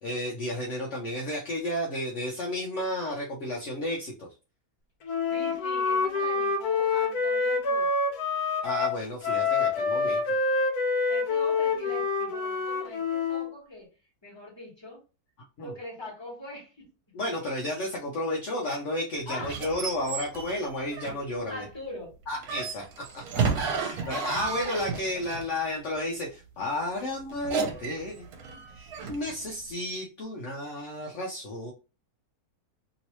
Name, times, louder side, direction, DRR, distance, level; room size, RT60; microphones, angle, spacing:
voice 1, 0.0-4.3 8.6-10.2 15.6-15.7 17.1-21.7 22.3-22.8 23.7-28.3 28.7-31.7, left 1 dB, 60° left, 1.0 m, -32 dB
Wind instrument woodwind instrument, 5.1-13.5, left 4 dB, 75° left, 1.2 m, -27 dB
voice 2, 5.3-8.0 11.1-13.9 14.2-15.0 15.6-16.9 19.3-19.6 21.5-22.1 29.3-29.5, left 1 dB, 20° left, 1.5 m, -42 dB
sound 1, 19.4-21.4 22.4-25.5 27.3-29.3, right 5 dB, 75° right, 1.2 m, -32 dB
3.1 x 2.9 x 2.9 m
omnidirectional pair, 1.6 m